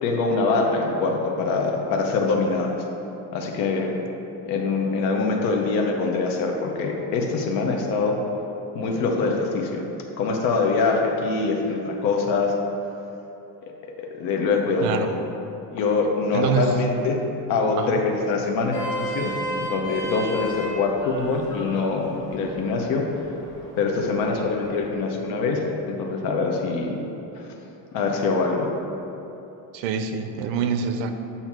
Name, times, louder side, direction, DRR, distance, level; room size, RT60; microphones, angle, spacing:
voice 1, 0.0-2.7 3.3-3.9 4.5-8.1 8.7-9.8 10.2-12.5 14.0-15.1 15.7-17.2 17.5-23.0 23.8-25.6 25.9-27.0 27.3-27.4 27.9-28.7, left 4 dB, 50° left, 1 dB, 0.8 m, -24 dB
voice 2, 14.8-15.1 16.3-16.7 17.8-18.0 29.7-31.1, right 7 dB, 80° right, 8 dB, 0.6 m, -25 dB
Vehicle horn car horn honking, 18.5-24.9, right 1 dB, 10° left, 0.4 m, -35 dB
7.3 x 2.8 x 5.9 m, 3.0 s
cardioid pair, 175°, 46 cm